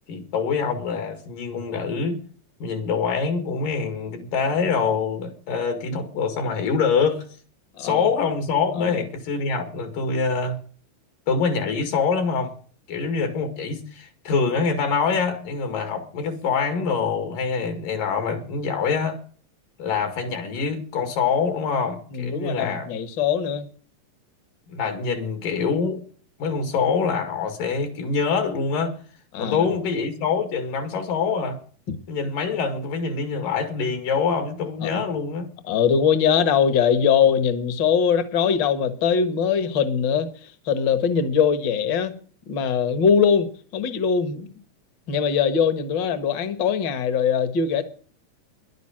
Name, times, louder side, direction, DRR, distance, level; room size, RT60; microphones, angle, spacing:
voice 1, 0.1-2.2 2.6-7.2 7.8-10.6 11.3-12.5 12.9-19.2 19.8-22.9 24.7-26.0 26.4-28.9 29.4-31.6 32.1-35.5, left 5 dB, 75° left, 3.6 m, -25 dB
voice 2, 22.1-23.7 29.3-29.6 34.8-34.9 35.7-42.1 42.5-44.5 45.1-47.8, left 7 dB, 50° left, 1.5 m, -21 dB
11.0 x 9.3 x 8.7 m
omnidirectional pair, 3.8 m